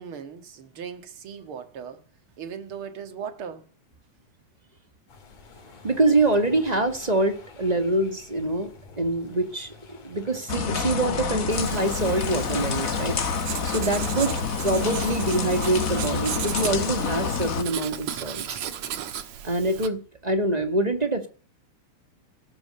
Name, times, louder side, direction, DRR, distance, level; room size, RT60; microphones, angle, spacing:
voice 1, 0.0-2.0 2.4-3.6 6.4-6.6, right 7 dB, 50° right, 2.3 m, -38 dB
sound 1, 5.1-12.5, left 4 dB, 70° left, 4.6 m, -48 dB
voice 2, 5.8-13.1 13.6-14.3 14.6-18.6 19.4-21.3, right 2 dB, 15° right, 1.4 m, -25 dB
sound 2, 10.5-17.6, left 5 dB, 50° left, 1.0 m, -28 dB
Writing, 11.5-19.9, right 9 dB, 65° right, 2.4 m, -36 dB
18.0 x 9.5 x 6.7 m
omnidirectional pair, 3.5 m